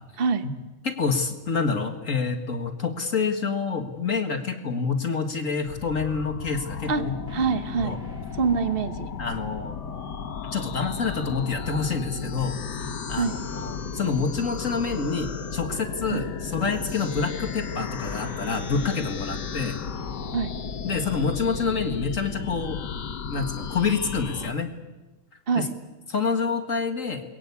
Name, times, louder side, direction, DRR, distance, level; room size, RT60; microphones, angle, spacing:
voice 1, 0.2-0.5 6.9-7.0 7.3-8.0 8.3-9.1 13.2-13.3 16.1-16.2 20.3-20.5 25.5-25.7, right 5 dB, 35° right, 10 dB, 1.1 m, -25 dB
voice 2, 0.8-7.1 7.5-7.6 7.8-8.0 9.2-9.8 10.5-12.6 13.1-19.8 20.8-22.8 23.3-24.7 25.6-25.7 26.1-27.2, left 5 dB, 40° left, 6 dB, 2.1 m, -27 dB
sound 1, 5.7-24.5, left 6 dB, 55° left, 1.9 m, -34 dB
sound 2, 7.1-9.5 10.7-21.0, left 3 dB, 5° right, 5.0 m, -46 dB
28.5 x 22.0 x 8.4 m, 1.1 s
omnidirectional pair, 2.2 m